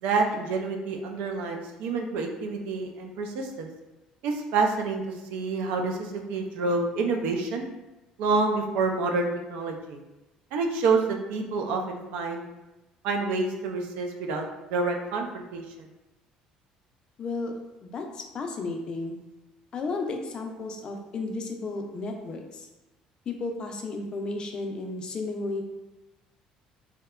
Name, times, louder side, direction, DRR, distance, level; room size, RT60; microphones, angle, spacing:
voice 1, 0.0-3.7 4.2-7.6 8.2-10.0 10.5-12.4 13.0-15.9, right 3 dB, 80° right, 3 dB, 0.4 m, -28 dB
voice 2, 17.2-17.5 17.8-19.2 19.7-22.7 23.3-25.6, left 3 dB, 35° left, 4 dB, 0.3 m, -33 dB
2.7 x 2.1 x 2.3 m, 1.0 s
cardioid pair, 120°, 2 cm